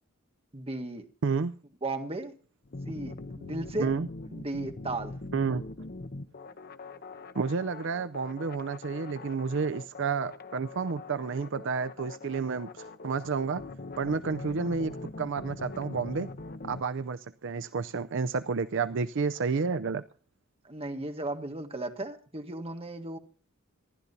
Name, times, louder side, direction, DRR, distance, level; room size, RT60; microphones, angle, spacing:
voice 1, 0.5-1.0 1.8-2.3 2.9-3.9 4.3-5.2 20.6-23.2, right 2 dB, 30° right, 6 dB, 1.7 m, -35 dB
voice 2, 1.2-1.5 3.8-4.1 5.3-5.6 7.3-13.6 14.0-16.3 16.6-20.0, right 5 dB, 65° right, 14 dB, 0.5 m, -30 dB
sound 1, 2.6-16.8, left 2 dB, 50° left, 0.9 m, -42 dB
27.0 x 12.0 x 2.7 m, 0.39 s
head